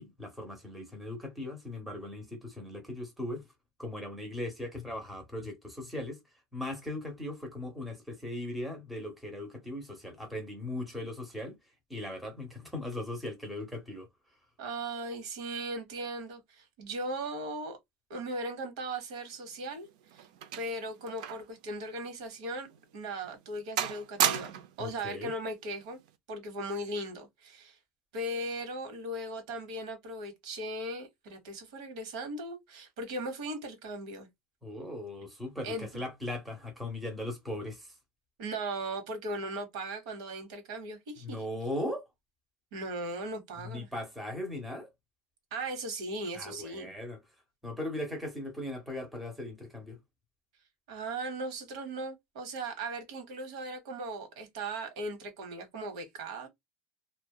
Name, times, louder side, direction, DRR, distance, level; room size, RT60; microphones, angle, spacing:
voice 1, 0.0-3.5 3.8-6.2 6.5-11.6 11.9-14.1 24.8-25.3 34.6-38.0 41.2-42.0 43.6-44.9 46.3-47.2 47.6-50.0, left 1 dB, ahead, 0.7 m, -38 dB
voice 2, 14.6-17.8 18.1-20.3 20.6-22.7 22.9-26.0 26.3-27.8 28.1-34.3 35.6-36.0 38.4-41.4 42.7-43.9 45.5-46.9 50.9-56.5, right 1 dB, 90° right, 0.9 m, -38 dB
sound 1, 19.5-21.6 21.9-22.0 22.7-22.8 23.2-23.5 23.8-24.8 25.8-26.1, right 10 dB, 75° right, 0.4 m, -33 dB
2.7 x 2.1 x 2.2 m
cardioid pair, 165°, 4 cm